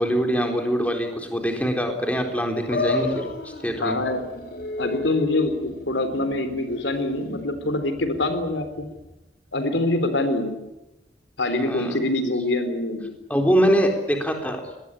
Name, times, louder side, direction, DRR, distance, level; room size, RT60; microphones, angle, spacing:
voice 1, 0.0-3.3 3.6-4.0 11.6-12.0 13.3-14.6, equal, 10° left, 3 dB, 3.8 m, -23 dB
sound 1, 2.7-9.1, left 2 dB, 55° left, 3.7 m, -33 dB
voice 2, 3.8-4.2 4.8-8.9 9.5-10.6 11.4-13.1, left 2 dB, 90° left, 9 dB, 3.6 m, -25 dB
23.0 x 19.5 x 9.9 m, 0.98 s
head